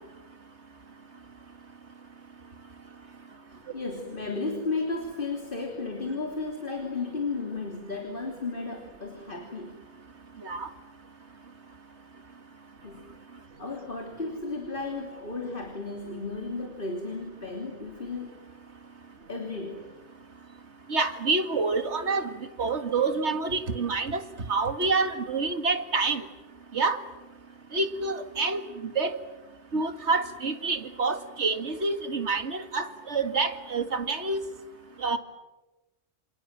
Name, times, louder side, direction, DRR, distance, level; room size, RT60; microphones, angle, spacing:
voice 1, 3.5-9.8 12.8-13.1 13.6-18.3 19.3-19.9, left 3 dB, 50° left, 3 dB, 3.4 m, -34 dB
voice 2, 20.9-22.3 22.6-24.2 24.5-26.2 26.7-27.0 27.7-29.1 29.7-34.4 35.0-35.2, right 3 dB, 85° right, 8 dB, 2.3 m, -27 dB
28.5 x 27.5 x 7.5 m, 1.1 s
omnidirectional pair, 1.1 m